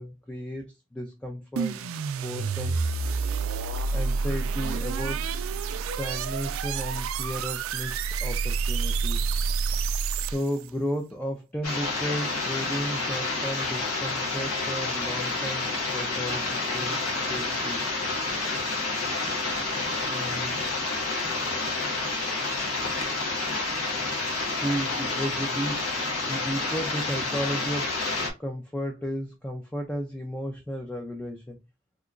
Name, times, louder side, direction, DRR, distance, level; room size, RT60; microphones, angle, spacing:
voice 1, 0.0-1.9 2.2-2.8 3.9-5.3 5.8-9.3 10.3-17.8 20.0-20.7 24.6-25.9 26.3-27.9 28.4-31.6, equal, 5° left, 0.4 m, -34 dB
sound 1, 1.6-10.7, right 5 dB, 70° right, 0.3 m, -28 dB
sound 2, 11.6-28.3, left 3 dB, 90° left, 1.0 m, -29 dB
2.8 x 2.2 x 3.8 m
head